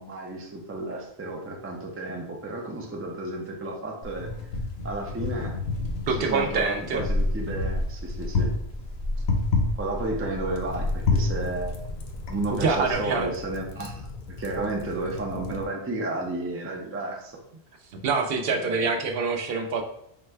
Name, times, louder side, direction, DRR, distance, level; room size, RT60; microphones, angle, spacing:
voice 1, 0.0-4.3 4.8-5.6 6.2-8.5 9.8-11.9 12.3-17.4 18.5-18.9, right 2 dB, 20° right, 1 dB, 0.4 m, -32 dB
Wind, 4.0-12.9, left 2 dB, 75° left, 1.0 m, -29 dB
voice 2, 6.1-7.0 12.5-13.3 18.0-19.8, right 4 dB, 70° right, 5 dB, 0.8 m, -25 dB
sound 1, 10.5-15.7, left 4 dB, 55° left, 0.5 m, -39 dB
3.8 x 2.2 x 4.4 m, 0.75 s
omnidirectional pair, 1.1 m